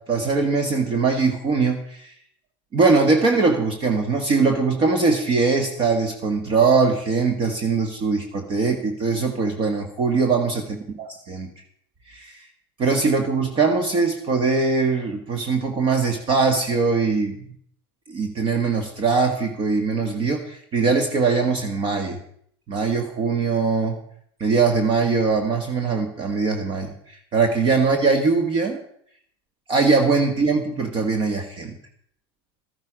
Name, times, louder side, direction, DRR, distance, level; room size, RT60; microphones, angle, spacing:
voice 1, 0.1-2.1 2.7-11.5 12.1-12.5 12.8-17.4 18.1-22.2 22.7-24.0 24.4-28.8 29.7-31.8, right 4 dB, 40° right, 4 dB, 1.7 m, -21 dB
13.5 x 10.5 x 5.2 m, 0.67 s
hypercardioid pair, 95°, 13 cm